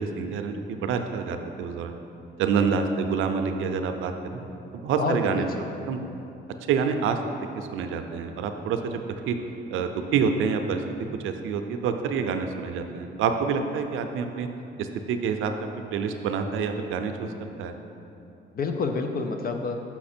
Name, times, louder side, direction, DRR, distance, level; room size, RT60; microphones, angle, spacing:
voice 1, 0.0-1.9 2.4-4.4 4.7-5.5 5.9-6.0 6.7-9.3 9.7-10.8 11.2-14.5 14.8-15.5 15.9-17.7, right 6 dB, 85° right, 7 dB, 0.5 m, -27 dB
voice 2, 5.0-5.6 18.5-19.8, left 4 dB, 50° left, 5 dB, 0.5 m, -28 dB
5.9 x 5.7 x 4.3 m, 2.8 s
cardioid pair, 90°, 20 cm